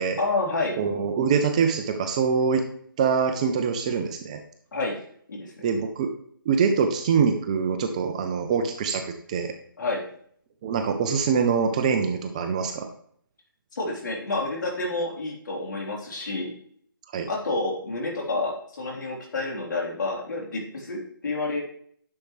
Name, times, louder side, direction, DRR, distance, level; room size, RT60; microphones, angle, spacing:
voice 1, 0.2-0.8 4.7-5.0 5.3-5.7 9.8-10.0 13.7-16.5 17.3-21.6, left 2 dB, 55° left, -2 dB, 3.6 m, -29 dB
voice 2, 0.8-2.7 3.0-4.4 5.6-6.1 6.5-9.0 9.3-9.5 10.6-12.9 17.1-17.3, right 6 dB, 20° right, 6 dB, 0.5 m, -24 dB
10.5 x 6.5 x 3.2 m, 0.62 s
figure-of-eight pair, 160°, 12 cm